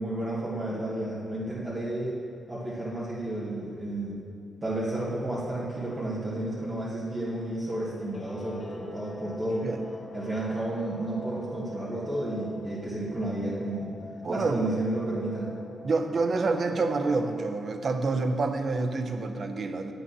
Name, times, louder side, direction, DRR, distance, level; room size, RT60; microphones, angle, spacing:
voice 1, 0.0-2.2 2.5-4.2 4.6-9.7 10.1-13.9 14.3-15.5, right 1 dB, 25° right, -10 dB, 2.2 m, -32 dB
Guitar, 7.9-17.3, left 2 dB, 40° left, 1.4 m, -45 dB
voice 2, 14.2-14.7 15.8-19.9, right 3 dB, 50° right, 7 dB, 0.8 m, -28 dB
8.5 x 7.1 x 6.0 m, 2.8 s
cardioid pair, 90°, 0 cm